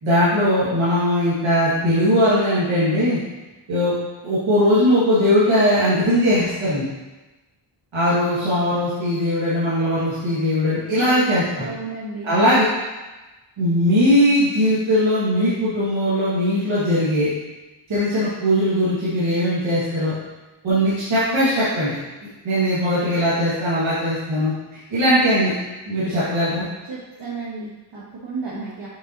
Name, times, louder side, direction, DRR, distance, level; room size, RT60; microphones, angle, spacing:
voice 1, 0.0-3.2 3.7-3.9 4.2-6.8 7.9-11.7 12.2-12.6 13.6-17.3 17.9-20.1 20.6-22.0 22.4-25.5 25.9-26.7, equal, 80° right, -11 dB, 2.2 m, -19 dB
voice 2, 11.0-12.6 26.9-28.9, right 3 dB, 65° right, -6 dB, 1.4 m, -33 dB
7.2 x 5.4 x 2.9 m, 1.1 s
cardioid pair, 60°, 46 cm